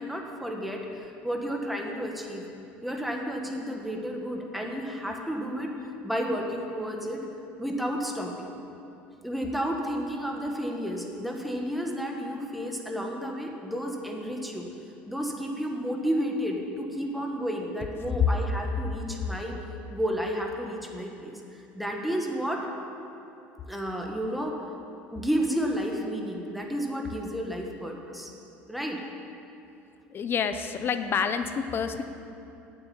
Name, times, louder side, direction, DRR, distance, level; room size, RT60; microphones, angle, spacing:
voice 1, 0.0-2.4 2.8-5.7 6.0-7.2 7.6-8.5 9.2-14.7 15.1-19.6 19.9-22.6 23.7-24.6 25.1-28.3 28.7-29.0, equal, ahead, 1 dB, 1.7 m, -31 dB
voice 2, 30.1-32.0, left 6 dB, 40° left, 10 dB, 0.8 m, -28 dB
8.9 x 7.8 x 8.9 m, 2.7 s
supercardioid pair, 90°, 6 cm